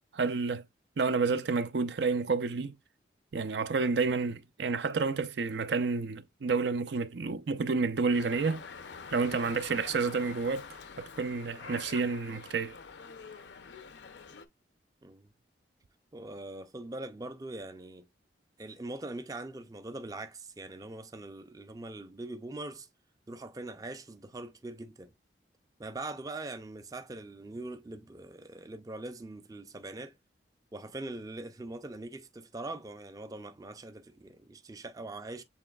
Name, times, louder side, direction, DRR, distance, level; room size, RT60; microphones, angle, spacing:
voice 1, 0.1-0.6 1.0-2.8 3.3-8.6 9.1-10.7 11.0-12.8, right 4 dB, 75° right, 0.5 m, -30 dB
Dog, 8.1-14.5, left 5 dB, 75° left, 0.6 m, -46 dB
voice 2, 15.0-15.3 16.1-18.1 18.6-22.9 23.3-25.1 25.8-30.2 30.7-35.4, right 2 dB, 20° right, 0.4 m, -42 dB
7.2 x 3.2 x 2.3 m
head